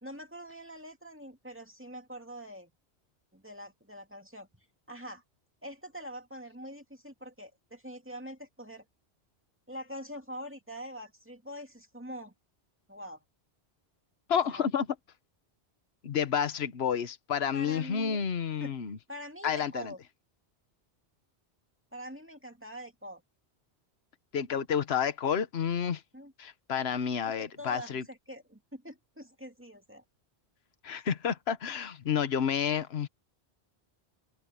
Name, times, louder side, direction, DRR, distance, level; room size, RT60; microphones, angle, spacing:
voice 1, 0.0-2.7 3.3-4.5 4.9-5.2 5.6-8.8 9.7-12.3 12.9-13.2 14.5-14.7 17.5-18.3 18.6-18.7 19.1-20.0 21.9-23.2 26.1-26.3 27.2-30.0, equal, 10° right, 2.2 m, -44 dB
voice 2, 14.3-14.9 16.0-19.0 19.4-19.9 24.3-26.0 26.4-28.0 30.8-33.1, left 7 dB, 70° left, 1.3 m, -30 dB
open air
omnidirectional pair, 1.1 m